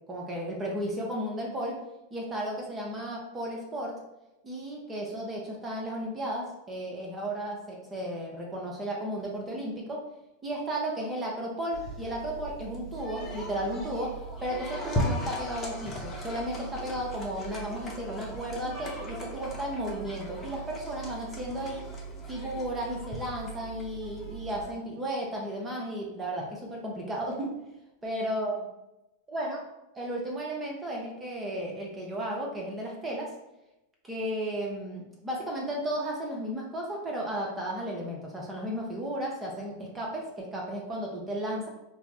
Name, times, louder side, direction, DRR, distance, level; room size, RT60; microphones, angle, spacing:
voice 1, 0.1-1.8 2.1-4.0 4.4-10.0 10.4-21.8 22.3-27.5 28.0-28.6 29.3-29.6 30.0-33.3 34.0-41.7, right 1 dB, 20° right, -2 dB, 0.7 m, -34 dB
sound 1, 11.7-24.7, right 1 dB, 25° left, 0.8 m, -37 dB
4.4 x 2.0 x 2.7 m, 0.93 s
figure-of-eight pair, 90°, 0 cm